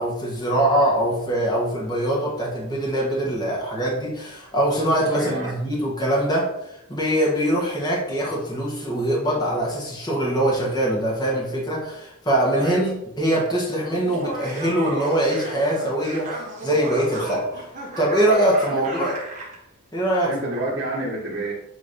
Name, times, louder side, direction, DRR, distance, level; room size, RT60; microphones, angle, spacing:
voice 1, 0.0-17.7 18.0-19.1 19.9-20.5, right 1 dB, 20° left, -4 dB, 1.4 m, -23 dB
voice 2, 5.1-5.5 12.6-12.8 18.7-19.1 20.3-21.5, right 1 dB, 70° right, -6 dB, 1.4 m, -29 dB
Laughter, 14.0-19.6, right 1 dB, 35° right, 1.5 m, -33 dB
7.8 x 3.1 x 4.2 m, 0.82 s
head